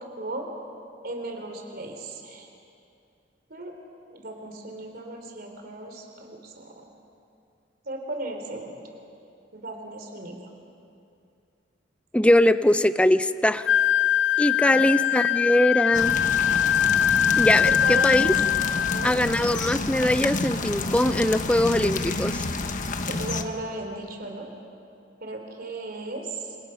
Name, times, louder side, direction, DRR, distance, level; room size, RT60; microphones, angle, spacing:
voice 1, 0.2-0.5 1.0-2.5 3.5-3.7 4.1-6.9 7.8-8.8 9.5-10.5 14.5-15.0 17.7-18.3 18.7-19.1 23.1-24.5 25.2-26.6, right 2 dB, 55° right, 3 dB, 3.3 m, -36 dB
voice 2, 12.1-13.7 14.4-16.2 17.4-18.3 19.0-22.4, left 1 dB, 5° left, 12 dB, 0.6 m, -21 dB
Wind instrument woodwind instrument, 13.6-19.1, left 9 dB, 65° left, 0.5 m, -22 dB
sound 1, 15.9-23.4, left 3 dB, 45° left, 1.3 m, -29 dB
29.5 x 27.0 x 5.7 m, 2.5 s
head